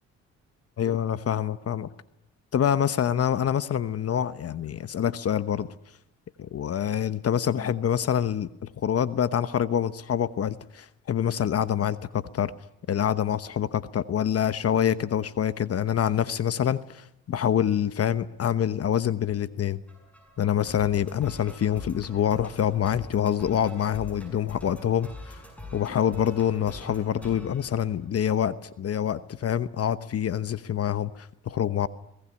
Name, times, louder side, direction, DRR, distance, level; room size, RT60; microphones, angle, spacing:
voice 1, 0.8-1.9 2.5-5.7 6.4-12.5 12.9-19.8 20.4-25.4 25.7-31.9, left 9 dB, 50° left, 14 dB, 1.0 m, -26 dB
sound 1, 19.9-28.5, left 1 dB, 5° left, 7.3 m, -44 dB
23.0 x 18.5 x 9.8 m, 0.79 s
cardioid pair, 90°, 30 cm